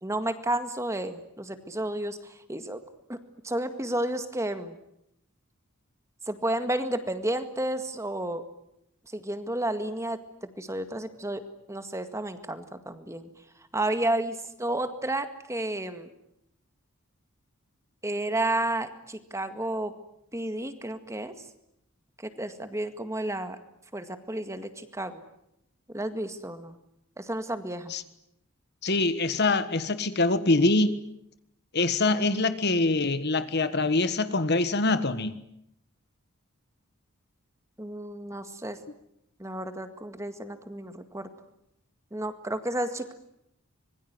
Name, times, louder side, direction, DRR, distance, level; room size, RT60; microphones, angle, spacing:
voice 1, 0.0-2.2 2.5-2.8 3.1-3.2 3.4-4.8 6.3-8.4 9.1-10.2 10.6-11.4 11.7-13.3 13.7-16.1 18.0-19.9 20.3-21.3 22.2-23.6 23.9-25.2 25.9-26.7 27.2-27.9 37.8-38.8 39.4-41.3 42.1-43.1, right 1 dB, 15° right, 1.9 m, -31 dB
voice 2, 28.8-31.0 31.7-35.4, left 2 dB, 50° left, 1.4 m, -24 dB
25.5 x 22.5 x 9.6 m
head